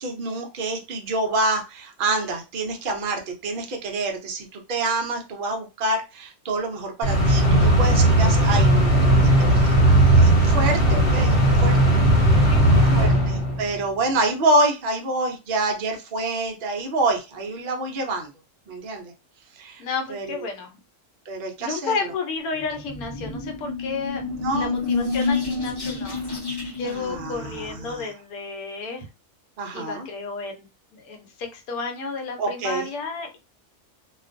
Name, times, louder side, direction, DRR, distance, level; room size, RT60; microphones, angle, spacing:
voice 1, 0.0-11.4 11.6-11.8 12.2-18.3 18.7-19.1 19.5-19.8 20.1-20.4 21.3-22.1 24.3-24.7 26.8-28.1 29.6-30.1 32.4-32.9, right 2 dB, 70° right, 2 dB, 0.5 m, -27 dB
sound 1, 7.0-13.8, right 1 dB, 55° left, 1.0 m, -17 dB
voice 2, 12.4-13.1 19.8-20.7 21.6-24.2 24.5-26.2 26.7-29.1 29.7-30.7 30.9-33.4, left 4 dB, 75° left, 3 dB, 1.1 m, -32 dB
sound 2, 22.6-28.0, left 4 dB, 25° left, 0.5 m, -29 dB
2.4 x 2.2 x 2.5 m, 0.28 s
omnidirectional pair, 1.6 m